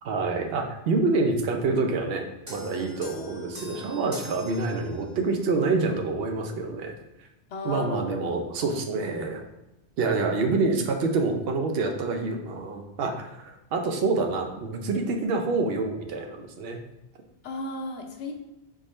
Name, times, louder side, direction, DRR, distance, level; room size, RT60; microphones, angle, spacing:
voice 1, 0.0-6.9 7.6-9.5 10.0-13.3 13.7-16.8, right 3 dB, 65° right, 4 dB, 0.8 m, -27 dB
sound 1, 2.5-5.3, equal, 15° right, 0.9 m, -43 dB
voice 2, 7.5-8.4 17.4-18.3, left 2 dB, 85° left, 3 dB, 1.0 m, -35 dB
4.0 x 3.6 x 3.1 m, 0.95 s
omnidirectional pair, 1.2 m